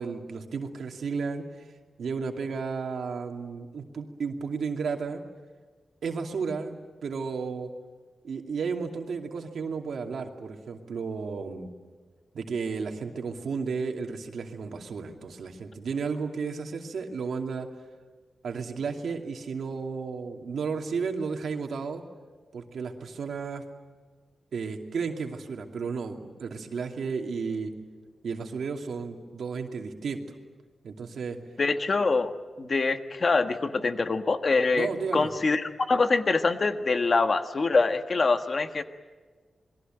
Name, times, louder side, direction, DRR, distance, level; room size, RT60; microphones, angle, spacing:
voice 1, 0.0-1.7 2.0-5.2 6.0-7.7 8.2-11.7 12.3-17.7 18.4-22.0 22.5-23.6 24.5-27.7 28.2-30.2 30.8-31.4 34.7-35.3, right 5 dB, 85° right, 3 dB, 2.6 m, -33 dB
voice 2, 31.6-32.3 32.6-38.8, left 3 dB, 40° left, 8 dB, 1.4 m, -24 dB
28.0 x 21.5 x 9.1 m, 1.4 s
wide cardioid pair, 155°, 0 cm